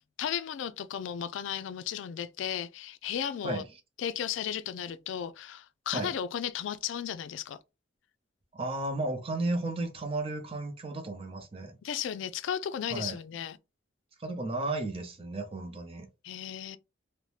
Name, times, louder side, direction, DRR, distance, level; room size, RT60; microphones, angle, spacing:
voice 1, 0.2-3.6 4.0-7.6 11.8-13.6 16.2-16.8, left 9 dB, 75° left, 0.3 m, -35 dB
voice 2, 8.5-11.8 12.9-13.2 14.2-16.1, right 2 dB, 30° right, 0.5 m, -34 dB
2.7 x 2.1 x 3.1 m
head